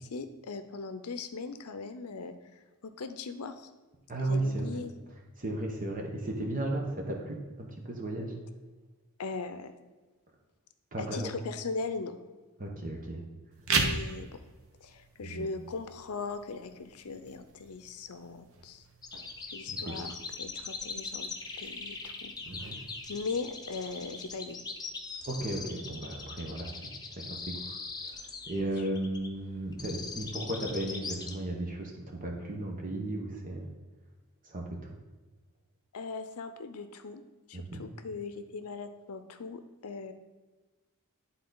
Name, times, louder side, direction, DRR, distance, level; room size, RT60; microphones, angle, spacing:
voice 1, 0.0-2.3 2.8-3.7 4.2-4.9 9.2-9.7 11.0-12.1 13.7-14.3 14.8-18.8 19.5-21.3 21.6-22.3 23.1-24.6 35.9-37.2 37.5-40.1, left 4 dB, 75° left, 9 dB, 0.6 m, -39 dB
voice 2, 4.1-4.8 5.4-8.3 10.9-11.3 12.6-13.2 15.2-15.5 19.9-20.0 22.5-22.8 25.2-26.7 27.2-27.8 28.0-33.7 34.4-34.9 37.5-37.8, right 1 dB, 40° right, 1 dB, 1.0 m, -35 dB
sound 1, 13.5-24.5, right 4 dB, 65° right, 0.9 m, -39 dB
sound 2, 19.0-31.3, left 4 dB, 20° left, 0.7 m, -41 dB
10.5 x 3.9 x 3.9 m, 1.3 s
head